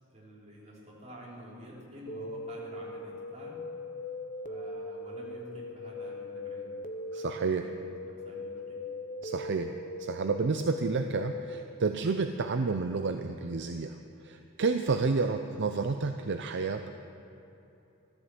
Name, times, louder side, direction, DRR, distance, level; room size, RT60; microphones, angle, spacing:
voice 1, 0.1-3.6 4.5-8.9 9.2-9.6 14.9-15.2, equal, 30° right, -4 dB, 3.8 m, -49 dB
sound 1, 2.1-11.6, left 2 dB, 40° left, 0.8 m, -40 dB
voice 2, 7.1-7.6 9.2-14.0 14.2-16.9, right 4 dB, 55° right, 7 dB, 0.6 m, -30 dB
14.5 x 12.5 x 7.8 m, 3.0 s
head